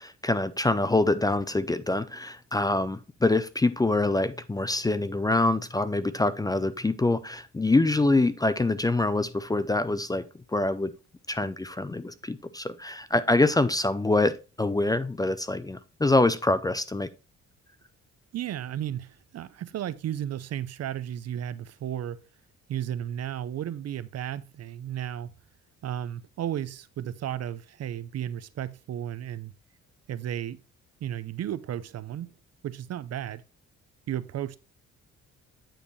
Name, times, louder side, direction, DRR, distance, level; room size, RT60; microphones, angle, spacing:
voice 1, 0.0-10.9 11.3-17.1, left 2 dB, 15° left, 0.4 m, -25 dB
voice 2, 18.3-22.2 22.7-25.3 25.8-29.5 30.1-30.6 31.0-32.3 32.6-33.4 34.1-34.6, right 11 dB, 55° right, 0.6 m, -34 dB
8.8 x 5.0 x 3.1 m
cardioid pair, 90°, 30 cm